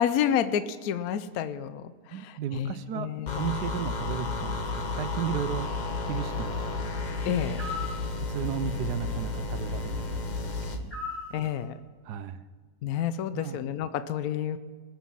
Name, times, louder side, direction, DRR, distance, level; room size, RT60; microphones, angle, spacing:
voice 1, 0.0-3.5 7.2-7.6 11.3-11.7 12.8-14.6, left 9 dB, 70° left, 12 dB, 1.0 m, -29 dB
voice 2, 2.1-6.9 8.2-10.9 12.0-12.4 13.3-13.7, right 9 dB, 80° right, 12 dB, 1.3 m, -35 dB
sound 1, 3.3-10.8, left 3 dB, 40° left, 0.7 m, -32 dB
sound 2, 7.6-8.0 10.9-11.3, left 4 dB, 5° left, 2.8 m, -35 dB
19.5 x 7.3 x 5.6 m, 1.5 s
omnidirectional pair, 1.8 m